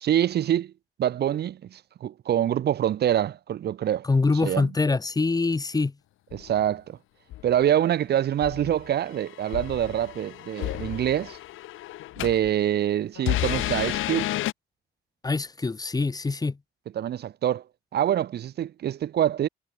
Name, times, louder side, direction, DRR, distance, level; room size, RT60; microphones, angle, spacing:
voice 1, 0.0-0.7 1.0-4.1 4.4-4.7 6.3-7.0 7.4-11.4 12.2-14.3 17.0-17.6 17.9-19.5, right 11 dB, 55° right, 0.6 m, -25 dB
voice 2, 4.0-5.9 15.2-16.6, left 3 dB, 20° left, 0.8 m, -24 dB
sound 1, 6.3-6.6 7.3-7.6 8.4-12.5 13.2-14.5, left 15 dB, 85° left, 1.2 m, -31 dB
cardioid pair, 90°, 20 cm